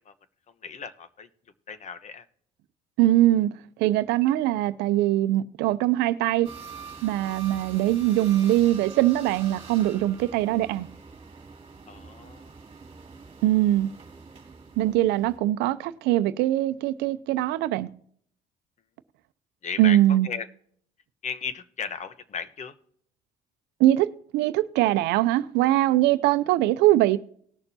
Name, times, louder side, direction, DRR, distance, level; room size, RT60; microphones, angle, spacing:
voice 1, 0.6-1.3 1.7-2.2 11.9-12.5 19.6-20.0 20.2-20.5 21.2-22.7, left 6 dB, 45° left, 1.1 m, -35 dB
voice 2, 3.0-3.5 3.8-6.5 7.0-10.9 13.4-13.9 14.8-17.9 19.8-20.3 23.8-27.2, right 14 dB, 90° right, 0.6 m, -22 dB
sound 1, 6.4-15.4, right 5 dB, 30° right, 2.4 m, -45 dB
19.0 x 6.7 x 2.8 m
cardioid pair, 110°, 17 cm